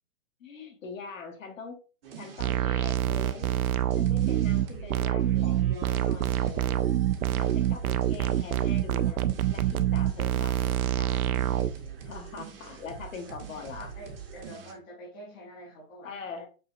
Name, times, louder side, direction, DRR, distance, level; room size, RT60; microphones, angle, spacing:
voice 1, 0.4-1.8 2.2-3.5 3.9-6.9 7.4-11.5 12.0-13.9 16.0-16.5, left 5 dB, 65° left, 3 dB, 1.3 m, -43 dB
sound 1, 2.0-14.7, right 7 dB, 40° right, 0.8 m, -44 dB
sound 2, 2.4-11.7, right 12 dB, 85° right, 0.5 m, -26 dB
voice 2, 13.8-16.1, equal, 10° left, -5 dB, 0.6 m, -46 dB
5.3 x 2.9 x 2.5 m, 0.37 s
hypercardioid pair, 160°, 42 cm